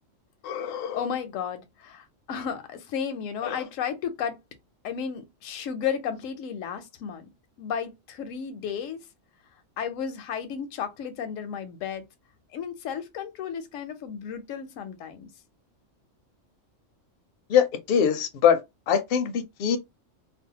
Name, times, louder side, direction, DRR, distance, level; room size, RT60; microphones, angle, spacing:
voice 1, 0.4-1.0 3.4-3.6 17.5-18.6 18.9-19.8, left 8 dB, 60° left, 0.6 m, -23 dB
voice 2, 0.9-4.4 4.8-7.3 7.6-9.0 9.8-12.0 12.5-15.3, left 7 dB, 85° left, 1.0 m, -33 dB
2.6 x 2.0 x 2.8 m
omnidirectional pair, 1.3 m